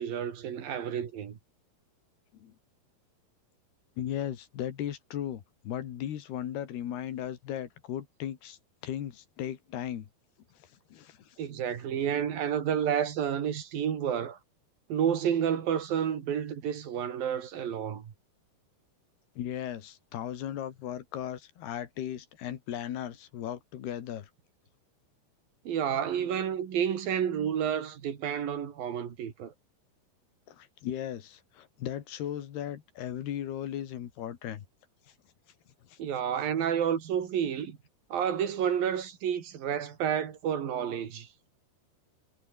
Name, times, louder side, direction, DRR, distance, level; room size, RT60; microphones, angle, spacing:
voice 1, 0.0-1.4 11.4-14.4 14.9-18.1 25.7-29.5 36.0-37.8 38.1-41.3, right 8 dB, 65° right, 4.1 m, -30 dB
voice 2, 4.0-10.1 10.9-11.4 19.4-24.3 30.5-34.7 35.9-36.0, left 10 dB, 80° left, 4.1 m, -37 dB
omnidirectional pair, 4.6 m